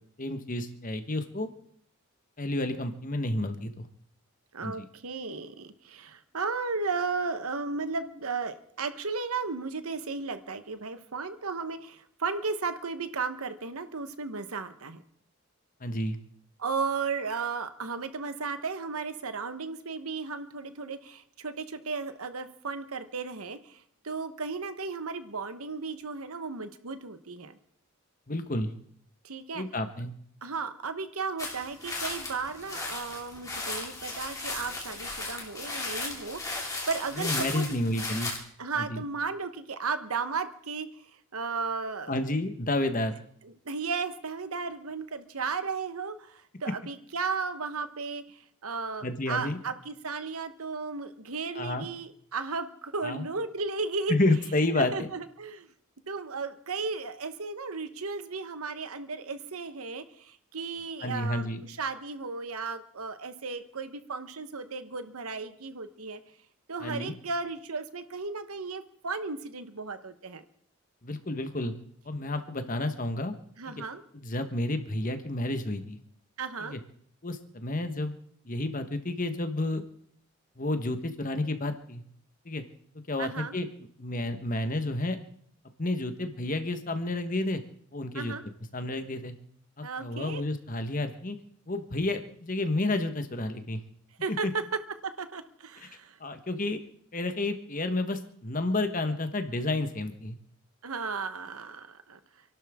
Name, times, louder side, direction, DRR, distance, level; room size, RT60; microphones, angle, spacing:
voice 1, 0.2-1.5 2.4-3.8 4.6-4.8 15.8-16.2 28.3-28.7 29.5-30.1 37.1-38.3 38.8-39.0 42.1-43.2 49.0-49.6 51.6-51.9 53.0-53.3 54.1-55.1 61.0-61.6 66.8-67.1 71.0-71.7 72.0-73.3 74.1-76.0 76.6-76.8 77.2-78.2 78.5-79.8 80.6-82.0 82.4-82.6 83.1-83.7 84.0-85.2 85.8-87.6 87.9-88.3 88.7-89.3 89.8-91.4 91.7-93.8 94.4-94.5 95.8-95.9 96.2-96.8 97.1-100.4, left 2 dB, 40° left, 8 dB, 1.2 m, -30 dB
voice 2, 4.5-15.0 16.6-27.6 29.2-29.6 30.4-37.8 38.6-40.9 41.3-42.1 43.4-54.2 54.8-55.7 56.1-66.2 66.7-70.4 73.6-74.0 76.4-76.8 83.2-83.5 88.1-88.4 89.8-90.4 94.2-94.6 95.0-96.2 100.8-102.2, right 4 dB, 90° right, 10 dB, 1.2 m, -35 dB
sound 1, 31.4-38.4, left 2 dB, 15° left, 2.6 m, -36 dB
28.0 x 12.0 x 3.7 m, 0.63 s
head